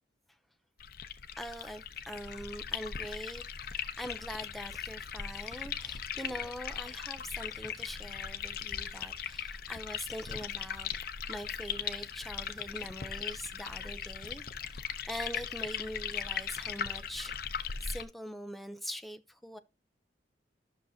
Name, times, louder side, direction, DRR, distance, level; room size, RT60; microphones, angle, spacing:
sound 1, 0.8-18.0, left 8 dB, 55° left, 0.6 m, -39 dB
voice 1, 1.4-10.9 11.3-19.6, equal, ahead, 0.5 m, -43 dB
12.5 x 6.4 x 2.7 m
head